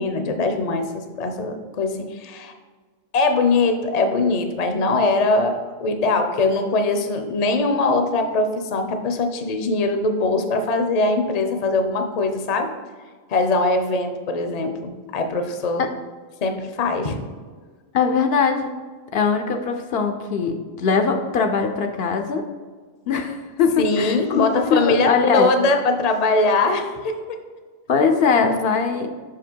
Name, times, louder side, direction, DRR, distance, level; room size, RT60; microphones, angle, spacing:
voice 1, 0.0-2.5 3.1-12.7 13.3-15.8 16.4-17.2 23.8-27.4, left 3 dB, 45° left, 6 dB, 0.7 m, -21 dB
voice 2, 17.9-18.8 19.1-22.4 23.1-25.5 27.9-29.1, left 5 dB, 70° left, 5 dB, 0.8 m, -21 dB
6.0 x 4.9 x 4.4 m, 1.5 s
omnidirectional pair, 1.1 m